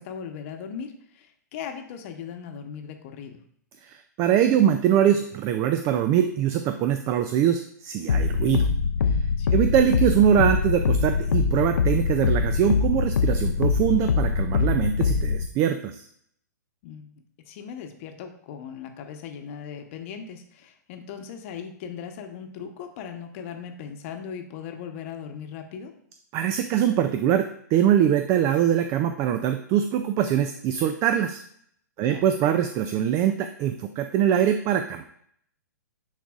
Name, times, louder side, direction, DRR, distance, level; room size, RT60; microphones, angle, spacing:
voice 1, 0.0-3.4 9.4-9.6 16.8-17.1 17.5-25.9 32.0-32.3, left 7 dB, 45° left, 5 dB, 1.0 m, -38 dB
voice 2, 4.2-8.7 9.5-16.1 26.3-27.4 27.7-31.4 32.0-35.0, right 10 dB, 30° right, 8 dB, 0.4 m, -23 dB
sound 1, 8.1-15.5, left 5 dB, 80° left, 0.5 m, -23 dB
10.0 x 4.0 x 2.4 m, 0.66 s
hypercardioid pair, 130°, 10 cm